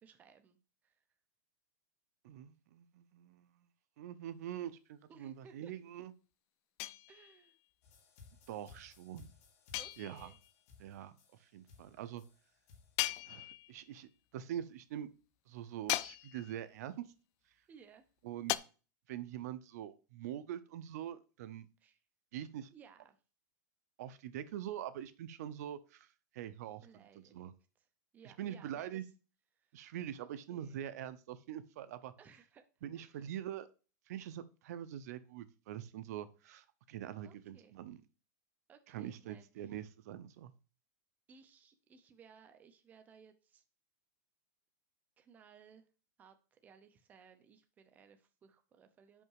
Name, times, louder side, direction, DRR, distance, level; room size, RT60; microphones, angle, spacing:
voice 1, 0.0-0.6 0.8-1.0 5.1-5.7 7.1-7.6 9.8-10.4 17.7-18.1 21.8-22.0 22.7-23.2 26.8-27.9 28.1-29.0 29.6-29.9 30.2-30.8 32.2-32.6 32.9-33.3 37.2-37.7 38.7-39.8 41.3-43.6 45.2-45.8 46.2-49.2, right 6 dB, 15° right, 0.7 m, -61 dB
voice 2, 2.2-3.7 4.0-6.1 8.5-9.3 10.0-10.3 10.8-11.1 11.4-12.2 13.2-15.1 15.5-17.1 18.2-18.5 19.1-21.7 22.3-22.7 24.0-26.1 26.3-26.9 27.3-27.5 28.2-29.0 29.7-32.1 32.8-33.7 34.1-38.0 38.9-40.5, right 11 dB, 65° right, 0.7 m, -44 dB
sound 1, 6.8-7.5 9.7-10.5 13.0-13.9 15.9-16.7 18.5-18.6, left 17 dB, 35° left, 0.3 m, -38 dB
sound 2, 7.8-13.0, left 5 dB, 60° left, 2.6 m, -60 dB
5.9 x 5.5 x 4.7 m
supercardioid pair, 160°, 9 cm